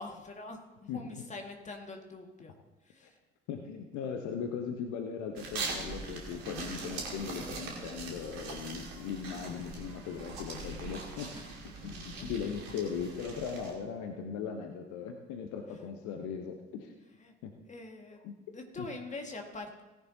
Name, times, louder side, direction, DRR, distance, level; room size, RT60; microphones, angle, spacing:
voice 1, 0.0-2.5 2.8-3.1 11.3-11.5 11.7-12.5 17.2-17.3 17.7-18.3 18.5-19.8, left 2 dB, 20° left, 3 dB, 2.1 m, -44 dB
voice 2, 3.5-11.3 11.6-16.9 17.4-17.5 18.2-18.3 18.8-18.9, left 6 dB, 55° left, 4 dB, 1.1 m, -38 dB
sound 1, 5.4-13.7, right 4 dB, 65° right, 2.3 m, -41 dB
17.5 x 10.5 x 2.9 m, 1.1 s
figure-of-eight pair, 55°, 34 cm